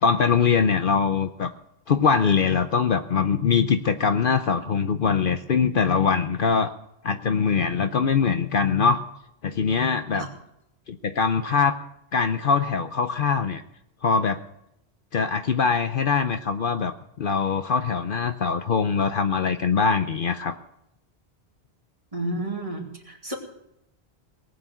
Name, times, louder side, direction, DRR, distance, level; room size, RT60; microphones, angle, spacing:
voice 1, 0.0-1.5 1.9-6.7 7.0-9.0 9.4-10.3 10.9-11.7 12.1-13.6 14.0-14.4 15.1-20.6, left 5 dB, 60° left, 9 dB, 0.8 m, -22 dB
voice 2, 22.1-23.4, right 1 dB, 30° right, -1 dB, 2.8 m, -31 dB
19.0 x 6.9 x 9.0 m, 0.80 s
omnidirectional pair, 1.1 m